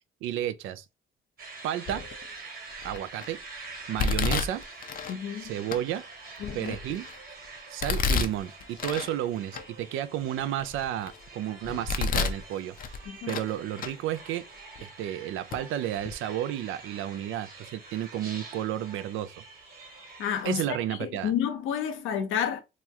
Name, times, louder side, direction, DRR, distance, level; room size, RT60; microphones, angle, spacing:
voice 1, 0.2-0.9 1.6-2.0 2.8-3.4 3.9-4.6 5.4-6.1 6.5-7.1 7.7-13.0 13.3-14.5 14.8-19.3 20.4-21.3, right 11 dB, 85° right, 0.4 m, -32 dB
sound 1, 1.4-20.4, right 3 dB, 45° right, 1.3 m, -46 dB
Domestic sounds home sounds, 1.9-2.3 2.8-3.3 4.0-5.2 5.7-5.8 6.4-7.2 7.8-9.1 9.5-9.6 10.2-11.2 11.6-12.4 12.8-13.5 13.8-13.9 14.8-14.9 15.5-15.6 16.0-16.1, left 5 dB, 45° left, 0.5 m, -30 dB
voice 2, 5.1-5.5 6.4-6.7 13.1-13.4 20.2-22.6, left 8 dB, 90° left, 0.7 m, -30 dB
3.0 x 2.1 x 3.4 m
cardioid pair, 90°, 20 cm